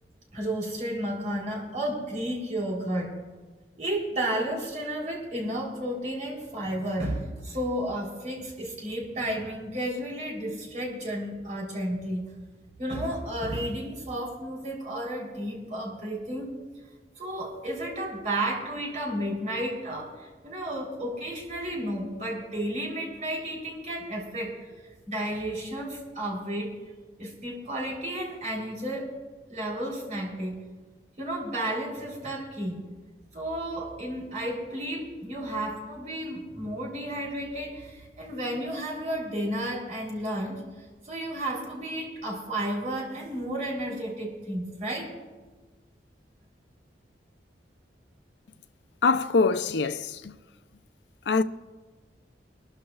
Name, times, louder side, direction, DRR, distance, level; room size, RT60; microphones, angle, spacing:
voice 1, 0.3-3.1 3.8-12.2 12.8-16.5 17.2-24.6 25.1-26.7 27.2-29.2 29.5-30.6 31.2-32.8 33.3-40.6 41.0-45.1, right 1 dB, 45° right, 3.5 m, -32 dB
voice 2, 49.0-50.3 51.3-51.4, left 4 dB, 80° left, 0.5 m, -24 dB
23.5 x 13.0 x 2.4 m
head